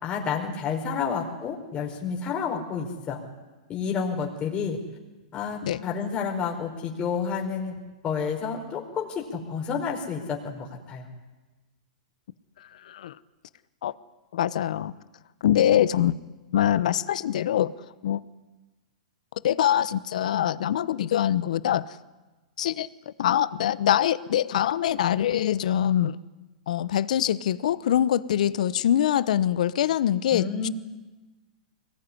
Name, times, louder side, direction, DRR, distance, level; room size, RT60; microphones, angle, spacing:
voice 1, 0.0-3.2 3.7-4.8 5.3-7.8 8.0-11.1 30.3-30.7, left 6 dB, 25° left, 1 dB, 4.8 m, -30 dB
voice 2, 12.8-13.2 13.8-13.9 14.3-14.9 15.4-16.2 16.5-17.7 18.0-18.2 19.4-22.0 22.6-22.9 23.2-26.2 26.7-30.7, left 11 dB, 70° left, 17 dB, 1.0 m, -24 dB
23.5 x 19.5 x 10.0 m, 1.2 s
hypercardioid pair, 130°, 4 cm